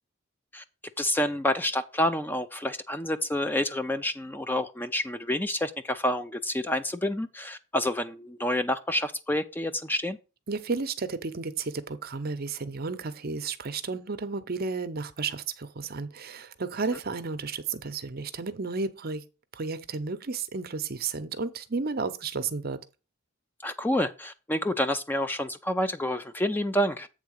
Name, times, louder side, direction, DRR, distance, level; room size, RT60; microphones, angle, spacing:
voice 1, 1.0-10.2 23.6-27.1, left 1 dB, 10° left, 0.4 m, -28 dB
voice 2, 10.5-19.2 19.5-22.8, right 4 dB, 50° right, 0.7 m, -32 dB
8.1 x 3.7 x 6.4 m
head